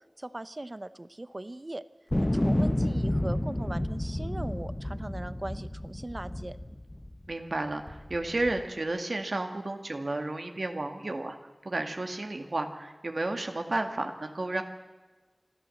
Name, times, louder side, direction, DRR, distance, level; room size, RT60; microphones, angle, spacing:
voice 1, 0.0-1.8 2.2-6.6, right 1 dB, 45° right, 14 dB, 0.9 m, -39 dB
sound 1, 2.1-7.3 7.9-8.6, left 1 dB, 30° left, 1.1 m, -30 dB
voice 2, 7.3-11.4 11.6-14.6, right 2 dB, 85° right, 5 dB, 2.0 m, -32 dB
26.5 x 13.0 x 7.8 m, 1.2 s
wide cardioid pair, 50°, 0 cm